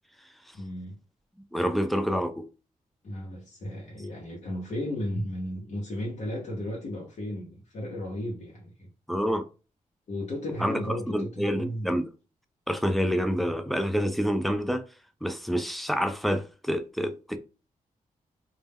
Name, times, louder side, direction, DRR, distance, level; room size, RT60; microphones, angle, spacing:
voice 1, 0.5-1.0 3.0-8.9 10.1-11.9, left 1 dB, 55° left, 0.7 m, -34 dB
voice 2, 1.5-2.3 9.1-9.4 10.6-10.8 11.1-12.1 12.7-14.8 15.2-17.4, equal, ahead, 0.3 m, -27 dB
2.1 x 2.1 x 3.4 m
cardioid pair, 90°, 14 cm